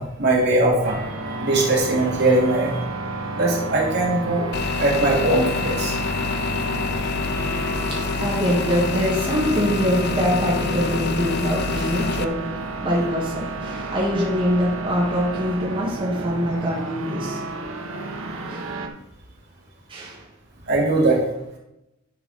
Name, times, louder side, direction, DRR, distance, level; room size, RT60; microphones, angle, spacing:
voice 1, 0.0-2.8 3.4-4.5 4.8-5.9 20.7-21.2, right 2 dB, 55° right, -3 dB, 2.4 m, -20 dB
sound 1, 0.8-18.9, right 2 dB, 75° right, 1.0 m, -31 dB
sound 2, 4.5-12.2, left 5 dB, 55° left, 0.5 m, -27 dB
voice 2, 7.9-12.5 12.8-17.4 18.5-18.7 19.9-20.2 21.1-21.2, equal, 25° right, -6 dB, 2.1 m, -24 dB
11.0 x 4.6 x 4.3 m, 0.86 s
head